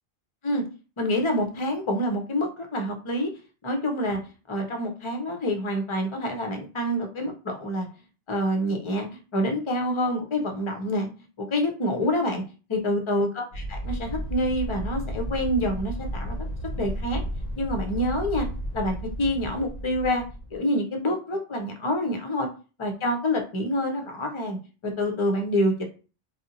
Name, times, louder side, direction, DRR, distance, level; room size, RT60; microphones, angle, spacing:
voice 1, 1.0-3.3 3.6-4.2 4.5-7.9 8.3-9.1 9.3-11.1 11.4-12.4 12.7-16.4 16.8-17.2 17.6-18.5 18.7-20.2 20.5-22.5 22.8-24.6 24.8-25.8, left 1 dB, 35° left, 4 dB, 0.6 m, -27 dB
sound 1, 13.5-20.6, equal, 65° left, 0.8 m, -33 dB
2.7 x 2.0 x 3.9 m, 0.34 s
omnidirectional pair, 1.0 m